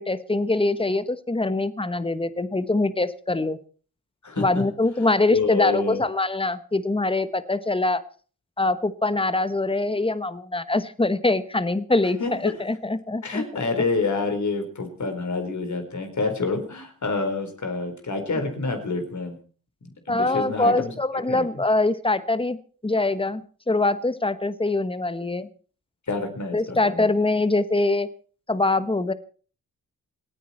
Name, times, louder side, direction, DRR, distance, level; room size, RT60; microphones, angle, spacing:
voice 1, 0.0-3.6 4.4-8.0 8.6-13.4 15.0-15.1 20.1-22.6 22.8-25.5 26.5-28.1 28.5-29.1, left 2 dB, 15° left, 14 dB, 1.2 m, -23 dB
voice 2, 4.2-4.6 5.3-6.0 12.2-12.6 13.2-19.4 19.8-20.9 21.3-21.4 26.1-27.1, left 3 dB, 55° left, 6 dB, 4.4 m, -27 dB
28.0 x 9.4 x 4.4 m, 0.41 s
cardioid pair, 60°, 35 cm